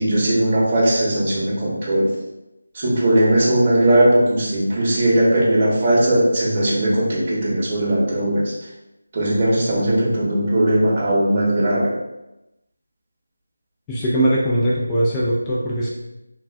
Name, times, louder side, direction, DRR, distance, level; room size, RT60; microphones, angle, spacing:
voice 1, 0.0-2.1 2.7-8.5 9.1-11.9, right 1 dB, 30° right, -6 dB, 0.8 m, -18 dB
voice 2, 13.9-15.9, right 1 dB, 10° left, -6 dB, 0.3 m, -20 dB
3.2 x 2.4 x 2.3 m, 0.94 s
figure-of-eight pair, 165°, 0 cm